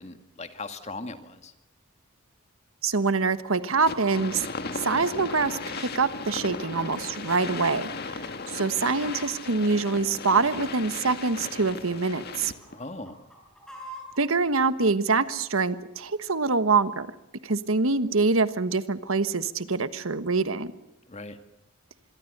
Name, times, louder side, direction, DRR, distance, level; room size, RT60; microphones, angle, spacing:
voice 1, 0.0-1.5 12.7-13.1 21.1-21.4, left 2 dB, 30° left, 8 dB, 2.0 m, -39 dB
voice 2, 2.8-4.4 4.7-12.5 14.2-17.1 17.4-20.7, right 4 dB, 75° right, 12 dB, 1.3 m, -25 dB
Chicken rooster, 3.4-4.3 4.9-7.1 7.5-7.6 8.1-8.4 8.6-9.5 10.2-12.0 12.4-14.2 14.9-15.0, equal, 5° left, 7.8 m, -46 dB
sound 1, 3.9-12.8, left 3 dB, 45° left, 2.0 m, -36 dB
26.0 x 23.0 x 6.7 m, 0.91 s
head